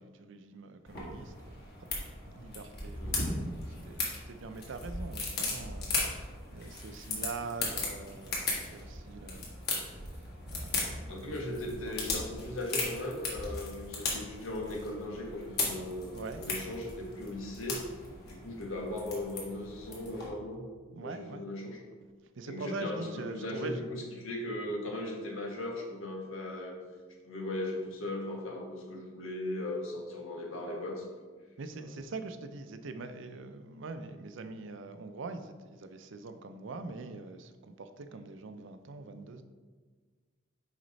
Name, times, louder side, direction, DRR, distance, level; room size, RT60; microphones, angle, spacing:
voice 1, 0.0-1.7 2.3-12.2 16.1-16.5 20.9-21.5 22.4-23.8 31.6-39.4, right 3 dB, 65° right, 9 dB, 0.5 m, -44 dB
sound 1, 0.9-20.3, left 2 dB, 50° left, 1.7 m, -37 dB
voice 2, 11.1-17.9 18.2-20.7 21.0-21.8 22.4-26.8 27.2-31.1 31.8-31.9, left 1 dB, 75° left, 0 dB, 1.4 m, -38 dB
6.3 x 5.0 x 4.0 m, 1.5 s
head